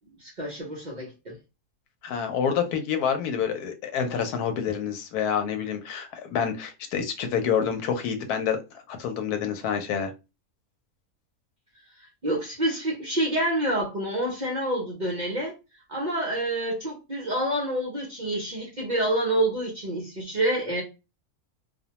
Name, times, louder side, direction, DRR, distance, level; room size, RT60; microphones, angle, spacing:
voice 1, 0.2-1.4 12.2-15.5 15.9-20.8, right 1 dB, 45° right, 0.6 m, -27 dB
voice 2, 2.0-8.6 8.9-10.1, left 7 dB, 90° left, 1.1 m, -27 dB
2.6 x 2.1 x 2.8 m
omnidirectional pair, 1.6 m